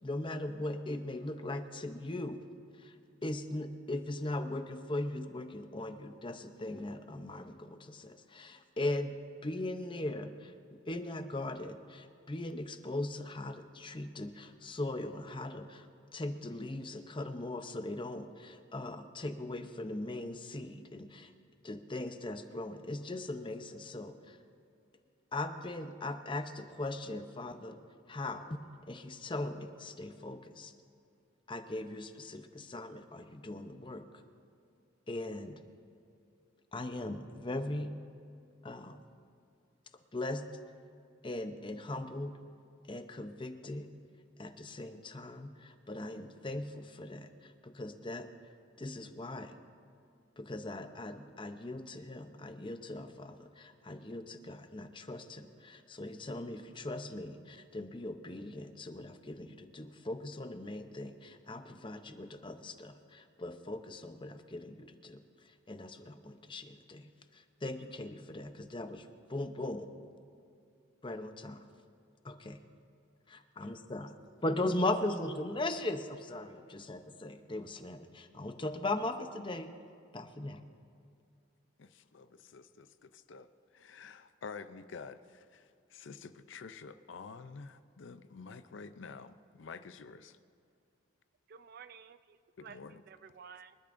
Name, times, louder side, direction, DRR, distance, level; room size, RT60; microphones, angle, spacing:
voice 1, 0.0-2.4 2.8-2.9 3.2-9.1 9.4-10.5 10.9-15.9 16.1-21.3 21.6-24.4 25.3-27.8 28.1-28.6 28.9-30.7 31.5-34.0 35.1-35.6 36.7-38.0 38.6-39.0 40.1-40.4 41.2-42.3 42.9-43.9 44.4-48.3 48.8-49.6 50.4-69.9 71.0-71.6 72.2-72.6 73.3-74.1 74.4-79.7 80.1-80.6, left 2 dB, 25° left, 8 dB, 0.7 m, -39 dB
voice 2, 81.8-90.4 92.6-93.0, left 5 dB, 65° left, 12 dB, 0.5 m, -49 dB
voice 3, 91.5-93.8, right 6 dB, 50° right, 13 dB, 0.4 m, -53 dB
25.5 x 12.0 x 2.6 m, 2.5 s
head